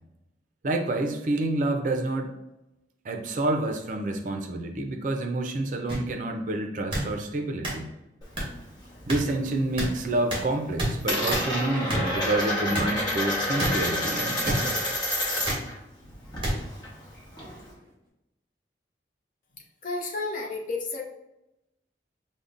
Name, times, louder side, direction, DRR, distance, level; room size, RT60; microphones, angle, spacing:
voice 1, 0.6-2.3 3.0-7.9 9.1-14.7, right 2 dB, 45° right, 4 dB, 0.4 m, -28 dB
sound 1, 5.9-6.0 6.9-7.1 7.6-7.7 8.4-8.5 9.1-9.2 9.8-9.9 10.3-10.4 10.8-10.9 11.3-11.4 11.9-12.0 12.7-12.9 13.6-13.7 14.4-14.6 15.5-15.6 16.4-16.5 17.4-17.5, right 1 dB, 30° right, 0.9 m, -27 dB
Coin (dropping), 8.2-9.4 9.7-10.2 10.4-15.7 16.0-17.7, left 1 dB, 25° left, 1.0 m, -29 dB
voice 2, 19.5-21.0, left 3 dB, 45° left, 0 dB, 0.7 m, -32 dB
5.1 x 2.1 x 2.4 m, 0.92 s
head